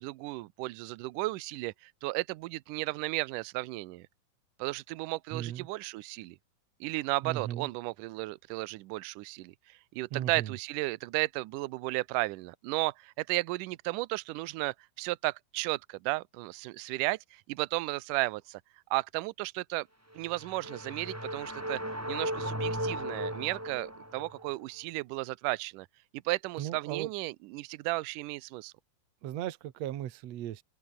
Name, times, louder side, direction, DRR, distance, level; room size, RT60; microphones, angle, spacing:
voice 1, 0.0-4.1 4.6-6.4 6.8-18.6 18.9-19.9 20.2-21.8 22.1-25.9 26.3-28.7, right 21 dB, 80° right, 1.9 m, -34 dB
voice 2, 5.3-5.7 7.2-7.7 10.1-10.5 26.6-27.1 29.2-30.6, right 12 dB, 60° right, 1.8 m, -36 dB
sound 1, 20.1-24.5, equal, 5° right, 4.0 m, -36 dB
omnidirectional pair, 4.5 m